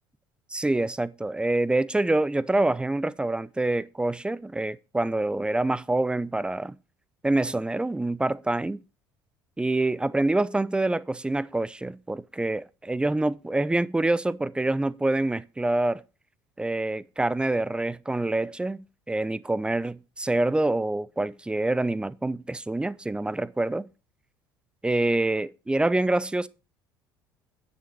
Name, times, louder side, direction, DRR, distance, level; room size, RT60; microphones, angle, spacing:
voice 1, 0.5-6.8 7.2-8.8 9.6-16.0 16.6-23.9 24.8-26.5, right 2 dB, 10° right, 0.6 m, -26 dB
9.6 x 7.1 x 4.7 m
figure-of-eight pair, 60°, 11 cm